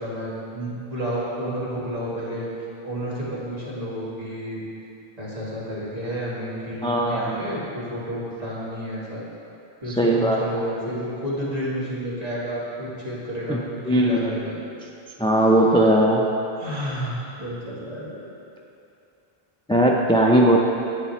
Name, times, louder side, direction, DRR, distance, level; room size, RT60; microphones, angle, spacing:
voice 1, 0.0-2.5 2.8-4.6 5.2-9.2 9.8-14.5 16.6-18.2, equal, 40° right, -8 dB, 2.2 m, -31 dB
voice 2, 6.8-7.4 10.0-10.4 13.5-13.6 13.9-14.2 15.2-16.2 19.7-20.6, right 1 dB, 10° left, -1 dB, 0.3 m, -18 dB
11.0 x 8.4 x 3.1 m, 2.7 s
omnidirectional pair, 1.0 m